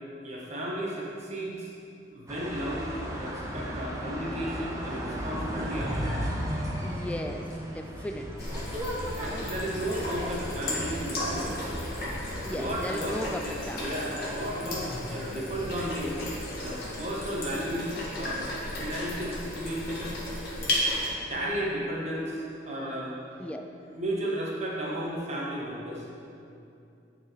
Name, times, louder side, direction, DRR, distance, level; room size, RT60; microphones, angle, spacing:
voice 1, 0.2-1.7 2.1-6.2 9.2-11.8 12.5-16.2 16.6-18.4 18.8-20.1 20.9-23.1 23.9-26.0, right 1 dB, 35° right, -4 dB, 1.3 m, -34 dB
sound 1, 2.3-12.7, equal, 15° right, 0.8 m, -35 dB
voice 2, 6.8-8.3 9.3-9.5 12.4-14.0 23.4-23.6, equal, 5° left, 5 dB, 0.3 m, -36 dB
sound 2, 8.4-21.1, left 1 dB, 55° left, 1.8 m, -34 dB
sound 3, 14.3-19.9, equal, 70° left, 1.3 m, -47 dB
9.6 x 4.7 x 4.5 m, 2.7 s
head